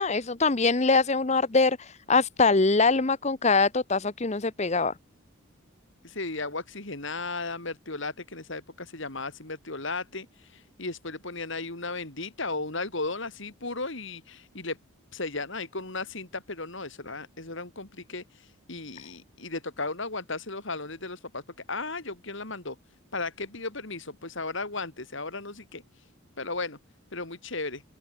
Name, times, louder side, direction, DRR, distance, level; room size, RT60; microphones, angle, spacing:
voice 1, 0.0-4.9, left 4 dB, 30° left, 0.8 m, -23 dB
voice 2, 6.0-14.8 15.1-21.4 21.7-22.8 23.1-26.1 26.4-26.8 27.1-27.8, left 3 dB, 60° left, 2.9 m, -35 dB
open air
head